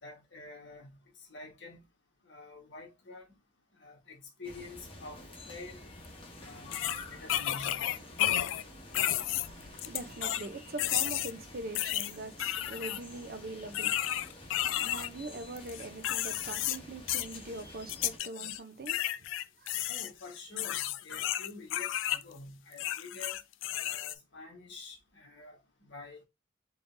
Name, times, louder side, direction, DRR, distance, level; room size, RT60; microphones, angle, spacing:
voice 1, 0.0-1.8 2.2-3.3 3.8-5.2 5.5-5.8 6.4-7.9 19.9-23.4 23.8-26.2, left 3 dB, 70° left, 1.4 m, -48 dB
sound 1, 4.4-18.2, left 1 dB, 30° left, 1.0 m, -49 dB
sound 2, 6.0-6.1 6.7-8.6 8.9-10.5 10.8-11.3 11.7-13.0 13.7-15.1 15.6-16.8 17.1-17.4 17.9-18.6 18.9-22.2 22.7-24.1, left 13 dB, 90° left, 0.3 m, -32 dB
voice 2, 9.1-19.1 19.6-20.0, right 2 dB, 50° right, 0.6 m, -43 dB
3.7 x 3.2 x 2.6 m
head